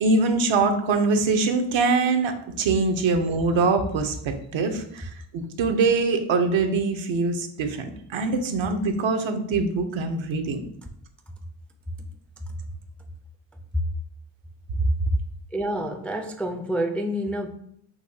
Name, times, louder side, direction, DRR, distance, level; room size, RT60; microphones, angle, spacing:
voice 1, 0.0-10.6, right 3 dB, 70° right, 5 dB, 0.8 m, -23 dB
voice 2, 15.5-17.5, right 1 dB, 5° left, 3 dB, 0.4 m, -28 dB
6.3 x 2.7 x 2.7 m, 0.67 s
cardioid pair, 85°, 49 cm